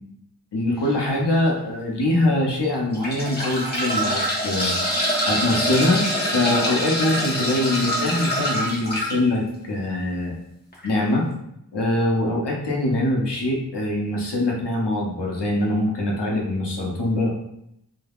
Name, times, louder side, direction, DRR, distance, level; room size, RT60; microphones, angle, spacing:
voice 1, 0.5-4.7 5.3-10.3 10.8-11.3 11.7-17.3, left 1 dB, 80° left, -1 dB, 0.7 m, -23 dB
sound 1, 0.8-1.1 1.7-1.8 2.7-9.1 10.7-10.9 11.1-11.2, equal, 25° left, 0.8 m, -25 dB
3.4 x 2.1 x 2.3 m, 0.80 s
wide cardioid pair, 45°, 40 cm